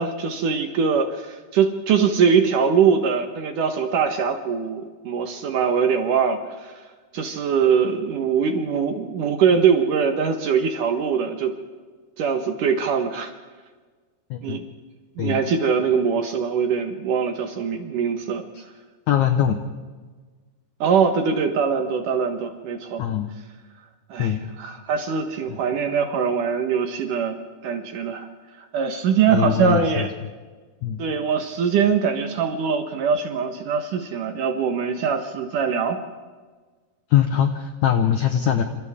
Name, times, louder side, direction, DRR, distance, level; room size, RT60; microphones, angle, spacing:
voice 1, 0.0-6.7 7.1-11.5 12.2-13.3 14.4-14.7 15.2-18.4 20.8-23.1 24.1-28.3 28.6-30.1 31.0-36.0, right 6 dB, 60° right, 6 dB, 2.4 m, -22 dB
voice 2, 19.1-19.6 23.0-23.3 24.2-24.5 29.3-30.1 30.8-31.0 37.1-38.6, left 9 dB, 75° left, 6 dB, 1.8 m, -21 dB
29.0 x 27.0 x 3.6 m, 1.4 s
omnidirectional pair, 4.9 m